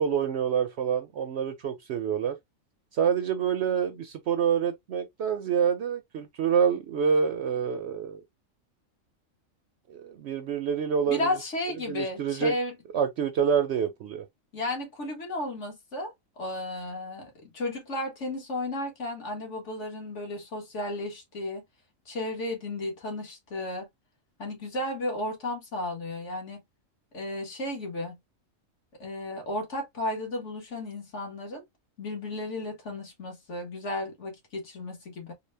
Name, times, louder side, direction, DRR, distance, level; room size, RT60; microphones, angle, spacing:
voice 1, 0.0-2.3 2.9-8.2 9.9-11.3 11.9-12.5 12.9-14.2, right 7 dB, 65° right, 0.7 m, -27 dB
voice 2, 11.0-12.7 14.5-21.6 22.1-23.9 24.4-26.6 27.1-28.2 29.0-31.6 32.0-35.3, left 1 dB, 60° left, 1.7 m, -34 dB
3.9 x 2.1 x 3.3 m
omnidirectional pair, 1.4 m